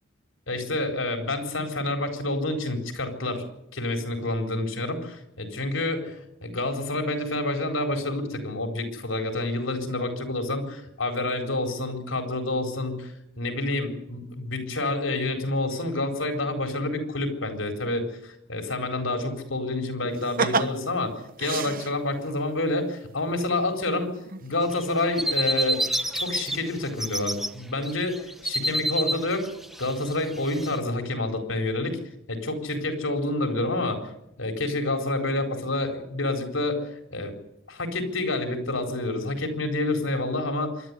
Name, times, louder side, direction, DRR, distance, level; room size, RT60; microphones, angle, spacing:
voice 1, 0.5-3.4 3.7-24.1 24.4-25.8 26.1-29.5 29.8-32.0 32.3-34.1 34.4-36.8 37.1-37.3 37.7-40.9, left 2 dB, 80° left, 5 dB, 4.3 m, -28 dB
sound 1, 20.2-22.3 23.7-23.8 24.2-24.7 25.0-25.1, right 4 dB, 45° right, 1.1 m, -29 dB
sound 2, 24.6-26.6 26.9-27.5 27.8-30.8, right 1 dB, ahead, 0.9 m, -28 dB
25.5 x 12.0 x 9.8 m, 0.83 s
head